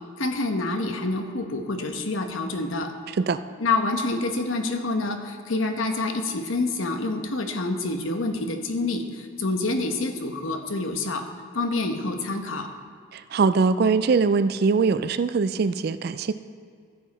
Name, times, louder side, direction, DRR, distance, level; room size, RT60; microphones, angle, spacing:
voice 1, 0.2-2.9 3.6-11.2 11.5-12.7, left 2 dB, 75° left, 5 dB, 1.0 m, -27 dB
voice 2, 13.1-16.3, right 4 dB, 50° right, 13 dB, 0.3 m, -22 dB
14.0 x 7.6 x 4.2 m, 2.2 s
head